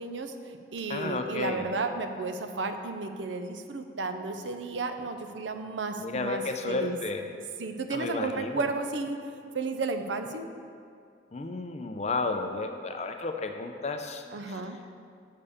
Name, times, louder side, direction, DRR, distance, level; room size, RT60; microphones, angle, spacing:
voice 1, 0.0-7.0 7.6-9.2 9.5-10.5 14.3-14.8, right 3 dB, 90° right, 7 dB, 0.6 m, -33 dB
voice 2, 0.9-1.7 6.0-7.3 7.9-8.7 11.3-14.6, left 3 dB, 35° left, 6 dB, 0.5 m, -32 dB
6.6 x 5.3 x 7.0 m, 2.3 s
head